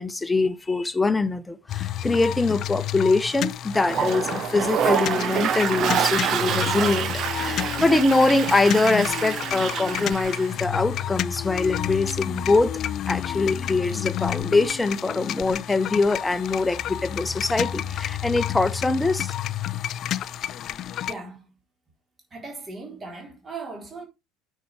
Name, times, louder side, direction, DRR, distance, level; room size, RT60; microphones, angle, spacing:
voice 1, 0.0-12.8 13.1-19.3, left 3 dB, 15° left, 1.0 m, -23 dB
sound 1, 1.7-21.1, left 11 dB, 45° left, 0.5 m, -30 dB
Toilet flush, 3.7-10.5, right 8 dB, 45° right, 1.0 m, -27 dB
voice 2, 21.1-21.6 22.3-24.1, right 3 dB, 25° right, 3.8 m, -38 dB
9.2 x 5.6 x 4.8 m
figure-of-eight pair, 65°, 0 cm